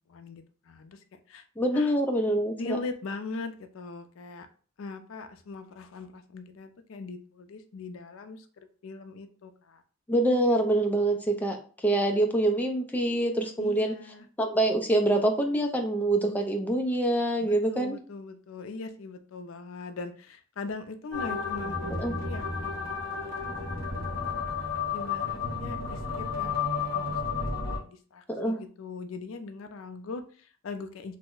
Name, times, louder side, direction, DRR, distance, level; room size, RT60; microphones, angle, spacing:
voice 1, 0.1-1.0 1.3-1.4 1.7-1.9 2.6-4.5 4.8-9.8 13.6-14.3 17.4-24.0 24.9-31.2, left 3 dB, 85° left, 8 dB, 0.4 m, -41 dB
voice 2, 1.6-2.8 10.1-11.6 11.8-13.9 14.4-18.0 22.0-22.1 28.3-28.6, right 1 dB, 10° left, 3 dB, 0.4 m, -25 dB
sound 1, 21.1-27.8, left 5 dB, 45° right, 1.2 m, -32 dB
3.1 x 2.0 x 3.6 m, 0.40 s
head